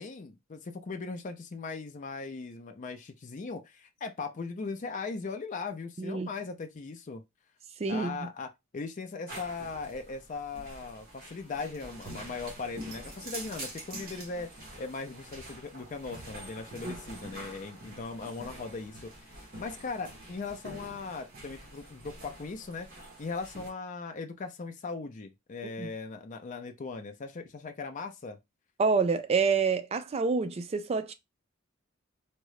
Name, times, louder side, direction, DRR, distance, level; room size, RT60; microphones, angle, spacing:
voice 1, 0.0-7.2 7.9-14.5 14.8-22.9 23.2-28.4, left 4 dB, 40° left, 0.4 m, -39 dB
voice 2, 6.0-6.3 7.8-8.2 16.8-17.0 25.8-25.9 28.8-31.1, right 4 dB, 30° right, 0.3 m, -27 dB
sound 1, 9.3-23.7, right 1 dB, 45° right, 1.3 m, -46 dB
3.6 x 2.1 x 3.1 m
head